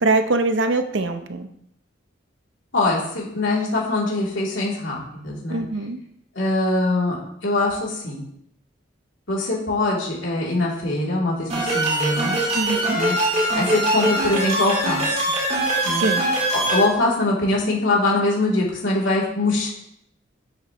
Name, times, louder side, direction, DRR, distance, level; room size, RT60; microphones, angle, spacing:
voice 1, 0.0-1.5 5.5-6.0 12.5-13.0 15.9-16.2, right 2 dB, 70° right, 8 dB, 0.7 m, -23 dB
voice 2, 2.7-5.6 6.3-8.2 9.3-12.4 12.9-13.1 13.5-15.2 15.8-16.0 16.5-19.7, left 2 dB, 75° left, -5 dB, 3.0 m, -23 dB
sound 1, 11.5-16.8, right 1 dB, 35° right, 2.0 m, -22 dB
9.1 x 7.2 x 3.1 m, 0.76 s
head